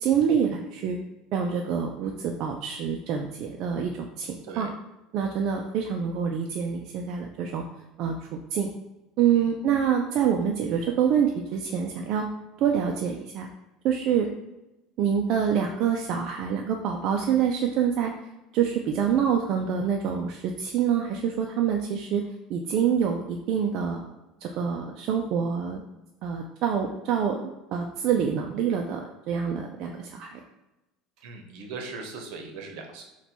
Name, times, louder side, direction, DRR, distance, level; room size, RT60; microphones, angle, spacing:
voice 1, 0.0-1.0 1.3-4.7 5.1-7.6 8.0-8.7 9.2-12.3 12.6-13.5 13.8-14.3 15.0-18.1 18.5-22.2 22.5-24.1 24.4-25.8 26.2-27.4 27.7-30.4, right 7 dB, 45° right, 1 dB, 0.3 m, -26 dB
voice 2, 31.2-33.0, right 4 dB, 65° right, 3 dB, 0.8 m, -39 dB
4.1 x 2.2 x 4.3 m, 1.0 s
cardioid pair, 170°, 0 cm